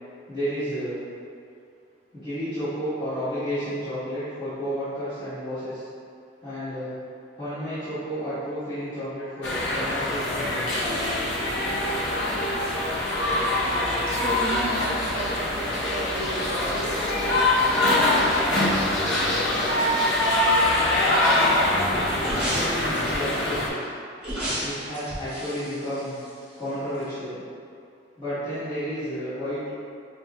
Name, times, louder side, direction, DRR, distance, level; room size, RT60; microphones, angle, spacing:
voice 1, 0.3-1.0 2.1-5.8 6.4-7.0 7.4-10.7 21.9-23.9 24.6-26.2 26.6-27.4 28.2-29.7, equal, 20° left, -20 dB, 1.5 m, -31 dB
sound 1, 9.4-23.7, left 1 dB, 75° left, 0.7 m, -24 dB
voice 2, 14.1-17.1, right 2 dB, 35° right, -2 dB, 0.4 m, -33 dB
sound 2, 22.2-23.4 24.2-26.7 27.0-27.1, right 1 dB, 5° right, 1.0 m, -32 dB
5.6 x 2.4 x 2.2 m, 2.3 s
head